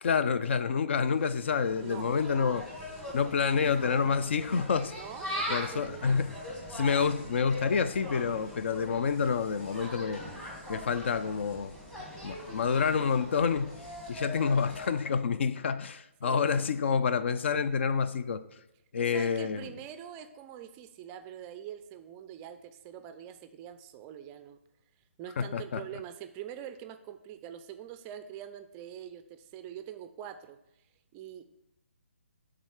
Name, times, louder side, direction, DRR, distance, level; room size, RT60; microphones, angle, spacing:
voice 1, 0.0-2.6 3.1-4.9 5.5-6.4 6.7-10.2 10.7-11.7 12.2-13.7 14.1-18.4 18.9-19.7 25.4-25.8, left 6 dB, 60° left, 0.5 m, -28 dB
Insect, 1.1-14.9, equal, 10° left, 1.2 m, -41 dB
voice 2, 4.9-6.2 16.2-16.7 19.0-24.6 25.2-30.6 31.1-31.4, right 10 dB, 20° right, 0.4 m, -44 dB
8.9 x 3.8 x 4.8 m
hypercardioid pair, 150°, 7 cm